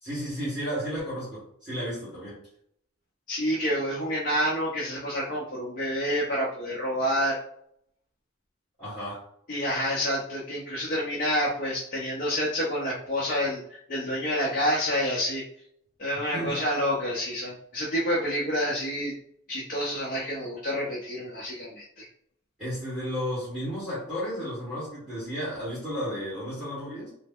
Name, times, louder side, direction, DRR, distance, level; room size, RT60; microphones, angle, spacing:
voice 1, 0.0-2.4 8.8-9.2 16.1-16.6 22.6-27.1, equal, 5° right, -11 dB, 1.4 m, -33 dB
voice 2, 3.3-7.4 9.5-15.4 16.0-19.1 19.5-22.1, equal, 40° left, -4 dB, 0.6 m, -28 dB
3.0 x 2.1 x 3.5 m, 0.69 s
head